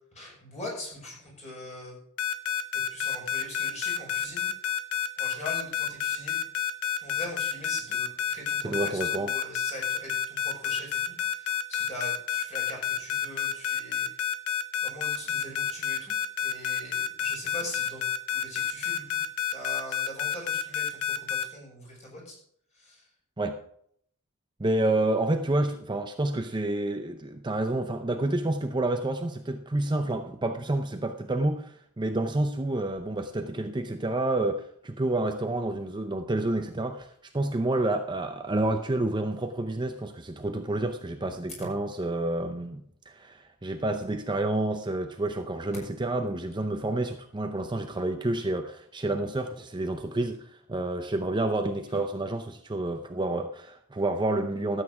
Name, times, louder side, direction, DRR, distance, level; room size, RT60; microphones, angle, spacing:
voice 1, 0.1-2.0 2.7-4.5 5.2-6.4 7.0-14.2 14.8-16.1 16.4-18.0 18.3-19.2 19.5-22.4 22.7-23.1, left 1 dB, 30° left, -2 dB, 5.6 m, -41 dB
sound 1, 2.2-21.4, left 9 dB, 75° left, 1.0 m, -29 dB
voice 2, 8.6-9.3 23.4-23.6 24.6-37.1 37.3-54.8, right 2 dB, 20° right, 6 dB, 0.6 m, -29 dB
13.0 x 8.4 x 4.7 m, 0.66 s
head